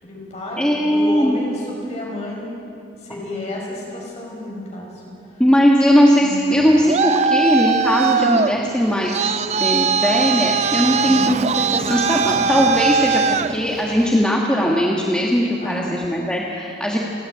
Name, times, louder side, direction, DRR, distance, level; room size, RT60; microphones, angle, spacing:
voice 1, 0.0-2.5 3.0-5.4 6.1-6.5 11.0-11.3 15.6-16.0, left 1 dB, 35° left, -3 dB, 5.5 m, -31 dB
voice 2, 0.6-1.4 5.4-9.3 9.6-17.0, equal, 5° left, -3 dB, 1.4 m, -19 dB
Traffic noise roadway noise, 6.5-14.2, right 6 dB, 35° right, 0.4 m, -21 dB
27.5 x 10.0 x 9.3 m, 2.7 s
head